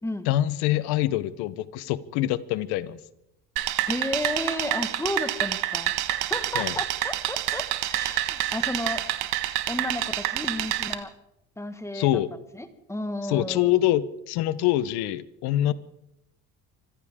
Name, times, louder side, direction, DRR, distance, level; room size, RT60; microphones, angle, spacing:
voice 1, 0.3-3.0 6.5-6.8 11.9-12.3 13.3-15.7, left 14 dB, 85° left, 16 dB, 1.0 m, -25 dB
sound 1, 3.6-10.9, right 15 dB, 90° right, 1.3 m, -28 dB
voice 2, 3.9-9.0 9.7-11.1 11.6-12.1 12.6-13.7, left 1 dB, 5° left, 9 dB, 1.6 m, -32 dB
25.5 x 15.0 x 3.7 m, 0.79 s
cardioid pair, 110°, 38 cm